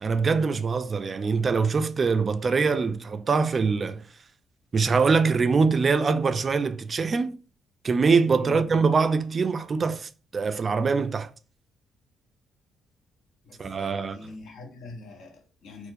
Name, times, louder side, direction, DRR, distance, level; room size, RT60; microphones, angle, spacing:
voice 1, 0.0-4.0 4.7-7.4 7.8-11.3 13.6-14.3, right 4 dB, 40° right, 0.3 m, -23 dB
voice 2, 8.4-8.7 13.4-15.9, left 2 dB, 75° left, 0.8 m, -43 dB
4.2 x 2.1 x 2.6 m
cardioid pair, 90°, 0 cm